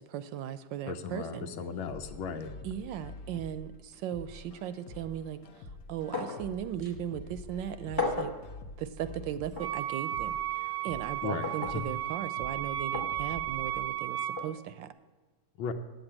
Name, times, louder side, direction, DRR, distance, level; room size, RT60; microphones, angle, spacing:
voice 1, 0.0-1.5 2.6-5.4 5.9-8.3 8.8-10.4 10.8-14.9, right 10 dB, 75° right, 13 dB, 1.2 m, -37 dB
voice 2, 0.9-2.5 11.2-11.8 15.6-15.7, left 6 dB, 90° left, 6 dB, 1.6 m, -36 dB
sound 1, 1.9-13.9, left 2 dB, 60° left, 1.0 m, -47 dB
sound 2, 6.1-6.5 6.8-6.9 8.0-8.4 9.5-9.7 11.4-11.8 12.9-13.1 14.4-14.5, left 3 dB, 15° left, 0.8 m, -33 dB
Wind instrument woodwind instrument, 9.6-14.5, right 12 dB, 55° right, 0.8 m, -34 dB
8.7 x 7.9 x 8.7 m, 1.2 s
omnidirectional pair, 2.1 m